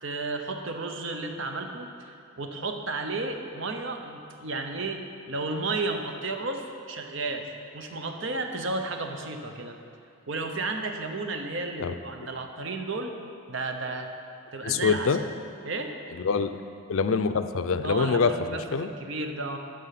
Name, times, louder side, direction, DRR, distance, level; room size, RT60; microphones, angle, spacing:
voice 1, 0.0-5.0 5.3-9.8 10.3-13.1 13.5-14.1 14.5-15.2 15.6-15.9 17.8-19.6, right 3 dB, 60° right, 5 dB, 0.9 m, -33 dB
voice 2, 14.6-15.2 16.1-16.5 16.9-18.3 18.7-18.9, left 5 dB, 75° left, 11 dB, 0.5 m, -25 dB
11.5 x 6.9 x 5.8 m, 2.6 s
head